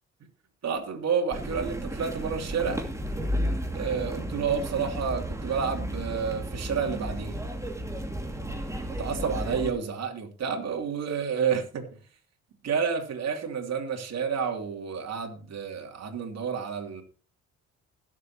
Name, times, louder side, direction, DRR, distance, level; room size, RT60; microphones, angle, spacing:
voice 1, 0.6-2.8 3.7-7.4 9.0-12.0 12.6-17.0, right 6 dB, 60° right, 3 dB, 3.0 m, -30 dB
sound 1, 1.3-9.7, equal, 10° right, 2.4 m, -33 dB
20.5 x 7.5 x 3.0 m, 0.37 s
cardioid pair, 90°, 30 cm